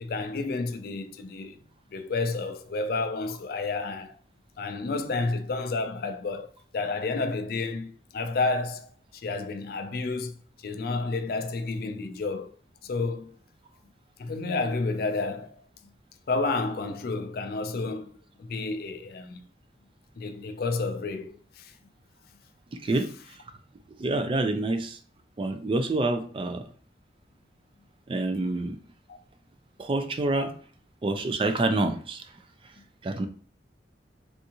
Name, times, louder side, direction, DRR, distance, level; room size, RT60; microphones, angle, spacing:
voice 1, 0.0-1.6 1.9-4.1 4.6-6.5 6.7-12.5 12.8-13.4 14.2-15.6 16.3-18.1 18.4-19.4 20.2-21.8 29.1-29.2, left 3 dB, 55° left, 0.4 m, -30 dB
voice 2, 22.7-23.1 24.0-25.0 25.4-26.7 28.1-28.8 29.8-30.5 31.0-32.2 33.0-33.3, right 2 dB, 30° right, 0.3 m, -27 dB
3.5 x 2.6 x 2.8 m
head